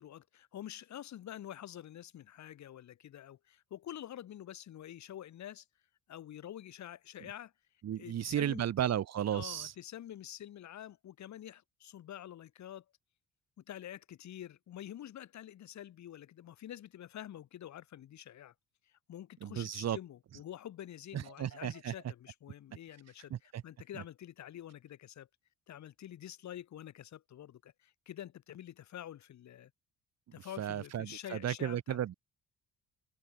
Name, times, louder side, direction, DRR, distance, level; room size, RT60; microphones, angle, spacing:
voice 1, 0.0-5.7 6.1-7.5 8.0-8.9 9.3-12.8 13.6-18.5 18.9-25.3 25.7-29.7 30.3-32.0, left 11 dB, 70° left, 2.2 m, -47 dB
voice 2, 7.8-9.7 19.4-20.0 21.1-21.9 23.3-23.6 30.6-32.1, right 10 dB, 60° right, 1.5 m, -34 dB
cardioid pair, 90°, 30 cm